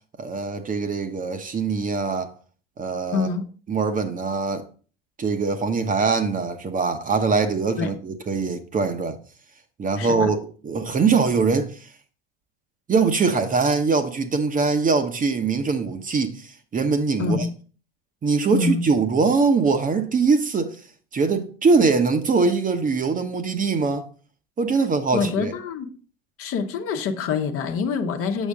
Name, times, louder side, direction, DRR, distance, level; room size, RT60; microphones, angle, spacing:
voice 1, 0.2-2.3 2.8-3.3 3.7-4.6 5.2-9.2 9.8-10.4 10.6-11.9 12.9-17.5 18.2-20.8 21.1-24.0 24.6-25.5, right 4 dB, 25° right, 1.0 m, -22 dB
voice 2, 3.1-3.5 7.8-7.9 10.0-10.3 17.2-17.5 18.5-18.9 25.1-25.9 26.4-28.5, left 5 dB, 45° left, 1.1 m, -25 dB
7.3 x 6.3 x 3.6 m
hypercardioid pair, 75°, 30 cm